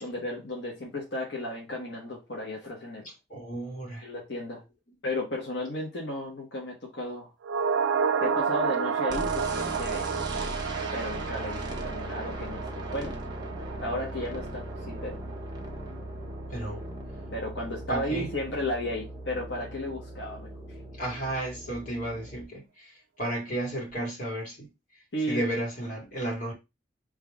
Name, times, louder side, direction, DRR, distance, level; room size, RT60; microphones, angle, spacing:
voice 1, 0.0-3.1 4.0-4.6 5.0-7.3 8.2-10.1 10.5-13.1 13.8-15.2 17.3-20.5 25.1-25.4, left 1 dB, 75° left, 1.3 m, -34 dB
voice 2, 3.3-4.1 16.5-16.8 17.9-18.3 20.9-26.5, right 1 dB, 45° left, 2.1 m, -33 dB
sound 1, 7.4-15.9 16.2-16.3, right 6 dB, 80° right, 0.3 m, -31 dB
sound 2, 9.1-22.4, right 1 dB, 20° right, 0.9 m, -38 dB
3.7 x 3.3 x 3.5 m
head